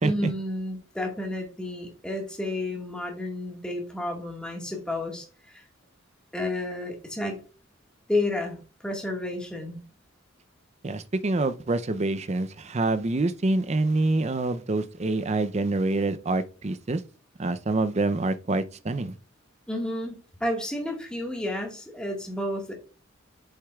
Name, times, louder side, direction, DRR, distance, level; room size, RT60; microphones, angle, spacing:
voice 1, 0.0-5.6 6.3-7.4 8.1-9.8 19.7-22.7, left 1 dB, 5° left, 1.6 m, -31 dB
voice 2, 10.8-17.0 17.4-19.1, right 2 dB, 35° right, 0.5 m, -26 dB
8.0 x 6.5 x 2.3 m
head